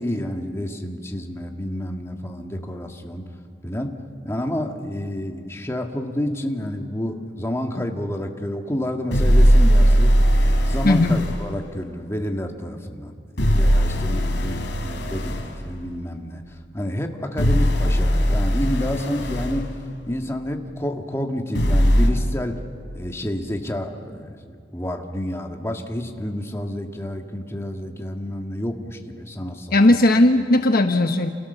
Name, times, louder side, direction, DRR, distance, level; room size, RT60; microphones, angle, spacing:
voice 1, 0.0-3.2 3.6-4.0 4.2-10.2 10.7-19.7 20.1-22.6 22.9-29.8, left 1 dB, 15° left, 2 dB, 1.9 m, -29 dB
sound 1, 9.1-11.4 13.4-15.5 17.4-19.6 21.6-22.1, equal, 75° left, 3.4 m, -18 dB
voice 2, 10.8-11.2 29.7-31.3, left 1 dB, 55° left, 6 dB, 1.1 m, -17 dB
29.5 x 28.0 x 6.9 m, 2.1 s
head